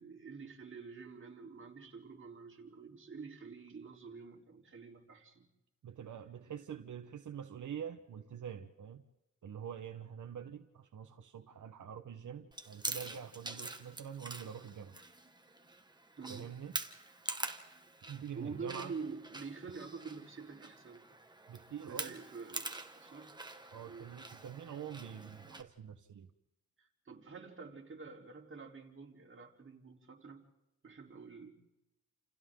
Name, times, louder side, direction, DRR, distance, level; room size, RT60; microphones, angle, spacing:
voice 1, 0.0-5.5 16.2-16.5 18.3-21.1 21.9-23.4 23.9-24.1 26.8-30.5 30.8-31.5, right 5 dB, 45° right, 0 dB, 4.0 m, -47 dB
voice 2, 5.8-9.0 9.4-15.0 16.3-16.8 18.1-18.9 21.5-22.2 23.7-26.3, right 8 dB, 90° right, 6 dB, 1.3 m, -45 dB
Chewing mastication, 12.5-25.6, right 2 dB, 15° right, 1.6 m, -46 dB
29.5 x 29.0 x 3.9 m, 0.94 s
wide cardioid pair, 140°, 30 cm